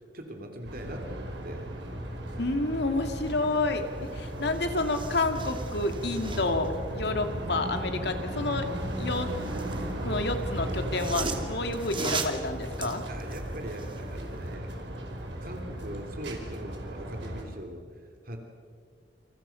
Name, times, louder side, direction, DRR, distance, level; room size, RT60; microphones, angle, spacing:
voice 1, 0.1-1.7 13.1-18.4, right 1 dB, 55° right, 3 dB, 3.0 m, -42 dB
sound 1, 0.6-17.4, right 1 dB, 85° right, 5.1 m, -36 dB
voice 2, 2.4-8.7 9.0-9.3 10.0-13.0, left 2 dB, 65° left, 6 dB, 2.6 m, -29 dB
sound 2, 4.1-4.2 4.4-6.7 8.8-9.9 10.7-14.0 14.5-14.6, right 4 dB, 30° right, 2.6 m, -38 dB
29.0 x 28.0 x 5.9 m, 2.1 s
head